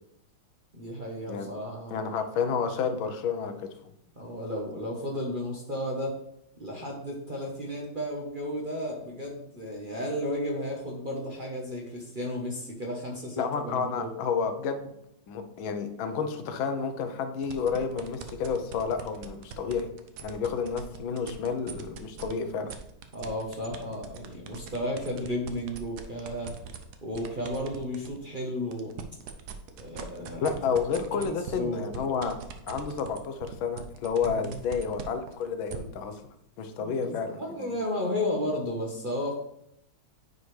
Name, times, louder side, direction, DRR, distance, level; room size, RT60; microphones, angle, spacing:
voice 1, 0.7-2.2 4.2-6.2 6.6-14.1 23.1-26.5 27.0-28.9 29.8-30.8 31.1-31.8 34.2-34.6 36.8-39.3, left 1 dB, 40° right, -1 dB, 0.8 m, -33 dB
voice 2, 1.9-3.7 13.4-14.9 15.3-19.9 20.2-22.7 30.4-32.4 32.7-36.2 36.6-37.8, left 6 dB, 75° left, 8 dB, 1.5 m, -30 dB
sound 1, 17.4-22.3 22.7-28.2 28.6-35.8, right 8 dB, 65° right, 1.0 m, -41 dB
9.4 x 4.9 x 3.2 m, 0.76 s
omnidirectional pair, 2.2 m